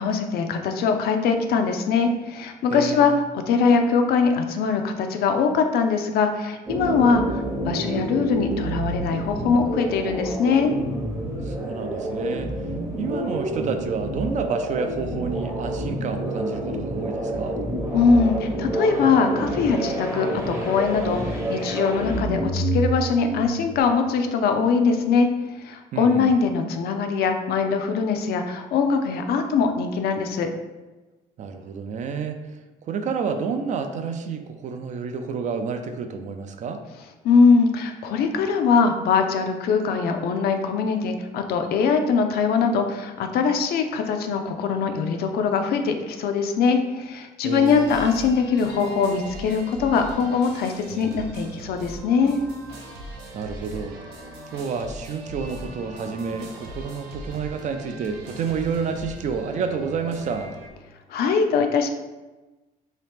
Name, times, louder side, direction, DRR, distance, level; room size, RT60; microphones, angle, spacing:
voice 1, 0.0-10.7 17.9-25.3 25.6-30.5 37.2-52.4 61.1-61.9, left 5 dB, 65° left, 6 dB, 0.4 m, -22 dB
voice 2, 2.7-3.2 11.4-12.5 13.0-17.6 25.9-26.3 31.4-36.8 47.4-47.9 53.3-54.0 54.5-60.5, right 5 dB, 45° right, 7 dB, 0.4 m, -29 dB
sound 1, 6.6-23.8, right 1 dB, 15° right, 0.7 m, -28 dB
sound 2, 47.5-60.7, right 1 dB, 85° right, 0.7 m, -40 dB
2.8 x 2.8 x 3.4 m, 1.1 s
cardioid pair, 110°, 17 cm